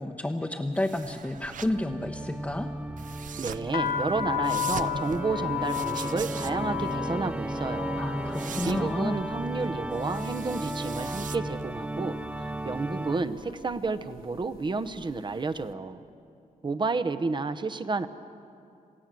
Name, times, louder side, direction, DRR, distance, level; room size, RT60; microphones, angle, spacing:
voice 1, 0.0-2.7 8.0-9.2, left 1 dB, 10° left, 1 dB, 1.0 m, -31 dB
sound 1, 0.7-11.8, right 8 dB, 60° right, 0.6 m, -43 dB
Organ, 1.7-13.6, right 1 dB, 10° right, 0.5 m, -35 dB
voice 2, 3.4-8.0 8.6-12.1 12.6-16.0 16.6-18.1, right 3 dB, 30° right, 10 dB, 1.0 m, -31 dB
sound 2, 3.7-11.6 11.9-12.5 13.2-13.5 13.7-15.2, left 10 dB, 85° left, 1.1 m, -35 dB
28.0 x 16.0 x 7.7 m, 2.6 s
cardioid pair, 95°, 15 cm